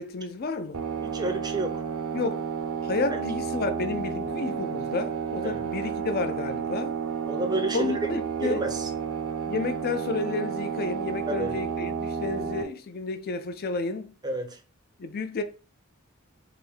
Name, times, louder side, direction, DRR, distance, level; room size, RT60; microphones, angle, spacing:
voice 1, 0.0-0.8 2.1-2.4 2.8-7.0 7.7-8.6 9.5-14.1 15.0-15.4, left 3 dB, 45° left, 0.4 m, -31 dB
sound 1, 0.7-12.6, right 6 dB, 70° right, 0.6 m, -31 dB
voice 2, 1.0-1.8 5.4-5.5 7.3-7.9 8.4-8.9 11.3-11.5 14.2-14.6, right 2 dB, 20° right, 0.5 m, -30 dB
3.4 x 2.6 x 3.4 m
head